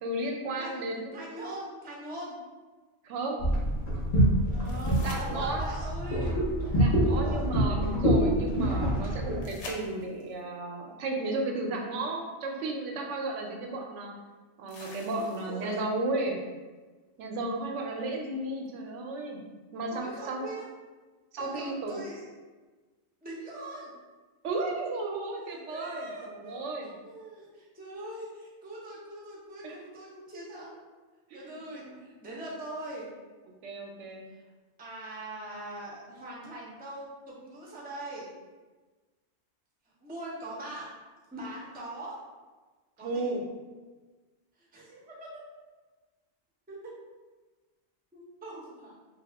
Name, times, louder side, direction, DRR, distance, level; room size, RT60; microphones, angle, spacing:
voice 1, 0.0-1.2 3.0-3.5 5.0-5.7 6.7-14.1 14.6-16.4 17.2-19.4 19.7-20.4 21.3-22.0 24.4-26.9 29.6-29.8 31.3-31.6 31.9-32.1 33.6-34.2 43.0-43.4, right 2 dB, 90° right, 1 dB, 0.9 m, -34 dB
voice 2, 1.1-2.4 4.5-6.3 6.7-6.8 7.0-7.4 15.2-15.8 19.9-20.6 21.4-22.3 23.2-23.9 25.7-26.8 27.0-30.8 31.3-33.1 34.8-38.3 40.0-40.9 41.3-42.2 43.0-43.4 44.6-45.3 46.7-46.9 48.1-48.9, right 1 dB, 10° right, -5 dB, 0.4 m, -41 dB
sound 1, 3.4-9.4, right 1 dB, 45° left, 0.6 m, -26 dB
sound 2, 4.6-5.9 9.4-10.4 12.3-12.4 14.7-15.7 18.7-18.8, left 3 dB, 80° left, 0.9 m, -46 dB
2.7 x 2.3 x 3.3 m, 1.3 s
omnidirectional pair, 1.2 m